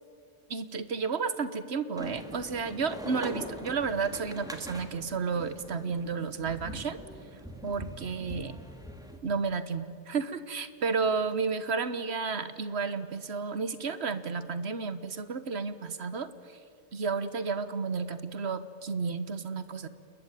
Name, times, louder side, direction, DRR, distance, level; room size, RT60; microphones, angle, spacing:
voice 1, 0.5-7.0 7.6-8.6 9.2-16.3 16.9-19.9, right 5 dB, 70° right, 13 dB, 1.5 m, -32 dB
sound 1, 2.0-9.2, equal, 5° right, 2.3 m, -43 dB
29.5 x 21.0 x 9.2 m, 2.5 s
omnidirectional pair, 1.1 m